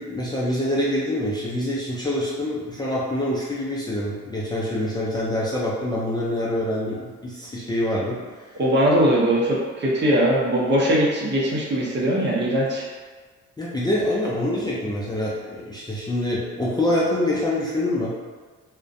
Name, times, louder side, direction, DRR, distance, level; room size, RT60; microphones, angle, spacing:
voice 1, 0.0-8.2 13.6-18.1, left 1 dB, 15° left, -7 dB, 0.4 m, -25 dB
voice 2, 8.5-12.8, right 1 dB, 35° right, -4 dB, 0.6 m, -20 dB
2.4 x 2.1 x 2.5 m, 1.5 s
cardioid pair, 90°, 30 cm